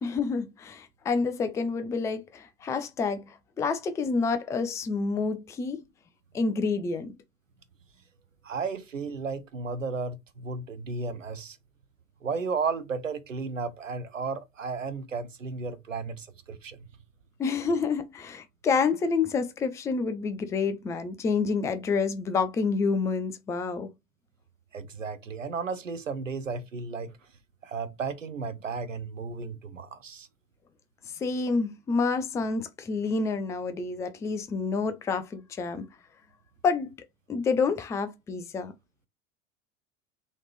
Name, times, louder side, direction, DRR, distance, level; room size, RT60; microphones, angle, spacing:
voice 1, 0.0-5.8 6.3-7.1 17.4-23.9 31.1-35.9 36.6-36.9 37.3-38.7, left 4 dB, 10° left, 0.4 m, -28 dB
voice 2, 8.4-11.6 12.2-16.9 24.7-27.2 27.6-30.3, right 4 dB, 85° right, 0.7 m, -34 dB
4.0 x 3.1 x 3.1 m
figure-of-eight pair, 80°, 38 cm